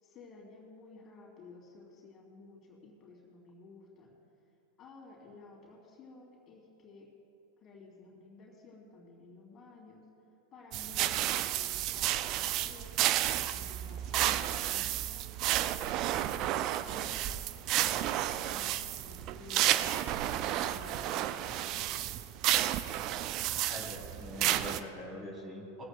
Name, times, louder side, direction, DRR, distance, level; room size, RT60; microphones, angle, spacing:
voice 1, 0.0-4.1 4.8-7.1 7.6-10.0 10.5-17.4 17.8-22.1, left 3 dB, 30° left, -2 dB, 3.1 m, -54 dB
sound 1, 10.7-24.8, right 13 dB, 40° right, 0.5 m, -31 dB
voice 2, 23.7-25.8, left 1 dB, 20° right, -2 dB, 3.2 m, -43 dB
21.0 x 16.0 x 2.3 m, 2.8 s
figure-of-eight pair, 90°, 0 cm